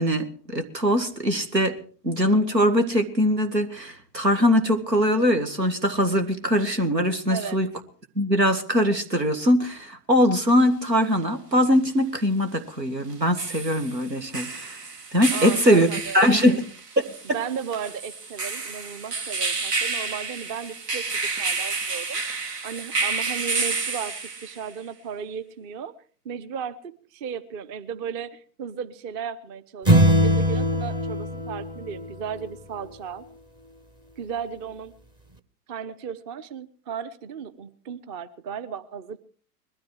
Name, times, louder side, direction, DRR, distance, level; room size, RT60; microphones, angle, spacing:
voice 1, 0.0-1.8 2.0-7.7 8.2-14.8 15.1-15.9 16.1-16.6 17.3-17.4, equal, 90° right, 8 dB, 2.1 m, -21 dB
voice 2, 7.3-7.6 15.3-16.6 17.2-22.2 22.6-25.9 26.2-33.2 34.2-34.9 35.7-39.2, right 7 dB, 30° right, 13 dB, 1.0 m, -35 dB
sound 1, 10.5-10.6 13.1-24.7, right 4 dB, 75° right, 2.2 m, -30 dB
sound 2, 29.9-32.5, equal, 10° right, 0.7 m, -21 dB
20.5 x 13.5 x 4.8 m, 0.42 s
figure-of-eight pair, 105°, 48 cm